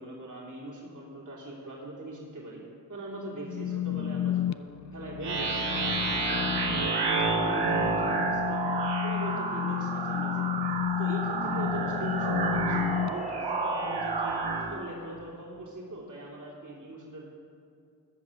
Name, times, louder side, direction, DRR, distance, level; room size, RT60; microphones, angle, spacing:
voice 1, 0.0-2.6 2.9-4.6 4.9-8.7 9.0-10.6 11.0-14.3 14.6-17.2, right 1 dB, 45° right, -4 dB, 2.8 m, -41 dB
sound 1, 3.5-13.1, left 11 dB, 45° left, 0.4 m, -32 dB
sound 2, 5.2-14.7, right 3 dB, 85° right, 1.5 m, -29 dB
13.5 x 5.6 x 7.5 m, 2.5 s
cardioid pair, 45°, 41 cm